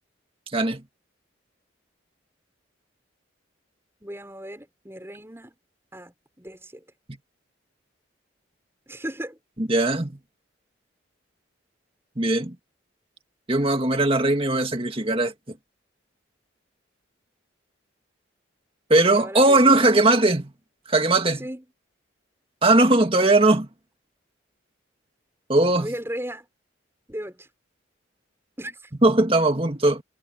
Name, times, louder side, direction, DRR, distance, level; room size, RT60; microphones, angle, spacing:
voice 1, 0.5-0.8 9.6-10.2 12.2-12.6 13.5-15.3 18.9-20.5 20.9-21.4 22.6-23.7 25.5-25.9 29.0-30.0, right 2 dB, 30° right, 2.1 m, -19 dB
voice 2, 4.0-5.6 5.9-6.8 8.9-9.4 19.1-19.9 21.4-21.6 25.8-26.5 27.1-27.5 28.6-28.9, equal, 15° right, 5.8 m, -36 dB
head